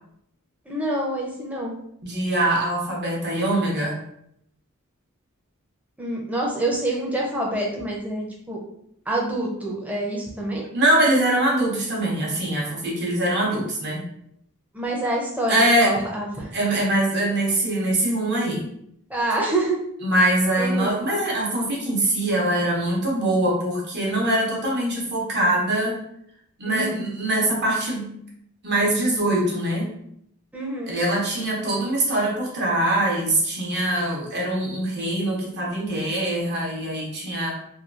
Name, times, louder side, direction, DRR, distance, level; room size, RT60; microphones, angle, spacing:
voice 1, 0.7-1.8 6.0-8.6 9.1-10.7 14.7-16.5 19.1-19.8 20.5-21.0 26.7-27.1 30.5-31.0, right 1 dB, 5° right, -2 dB, 0.5 m, -27 dB
voice 2, 2.0-4.0 10.7-14.0 15.5-15.9 16.5-18.6 20.0-26.0 26.6-28.1 28.6-29.9 30.9-37.5, right 1 dB, 50° right, -3 dB, 0.8 m, -23 dB
2.8 x 2.2 x 2.4 m, 0.73 s
head